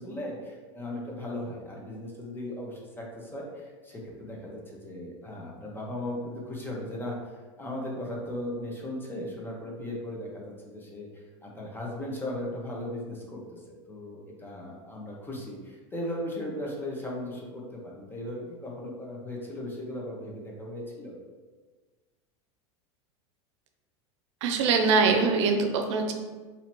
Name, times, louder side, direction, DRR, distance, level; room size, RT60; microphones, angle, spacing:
voice 1, 0.0-21.2, left 1 dB, 15° left, -2 dB, 1.0 m, -37 dB
voice 2, 24.4-26.1, right 4 dB, 75° right, 4 dB, 0.6 m, -23 dB
2.8 x 2.8 x 4.4 m, 1.4 s
hypercardioid pair, 105°, 15 cm